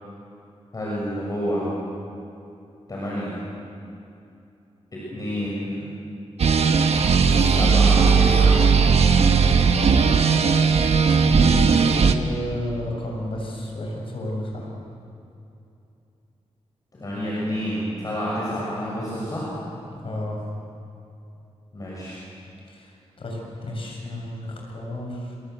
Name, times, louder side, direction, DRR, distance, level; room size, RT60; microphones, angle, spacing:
voice 1, 0.7-1.6 2.9-3.4 5.1-5.9 7.2-8.6 17.0-19.5 21.7-22.2, equal, 30° left, -6 dB, 6.9 m, -29 dB
sound 1, 6.4-12.1, right 5 dB, 65° right, 1.4 m, -17 dB
voice 2, 10.6-14.7 19.9-20.4 22.7-25.4, left 1 dB, 50° left, 0 dB, 7.3 m, -32 dB
27.0 x 23.0 x 8.1 m, 2.7 s
wide cardioid pair, 135°, 12 cm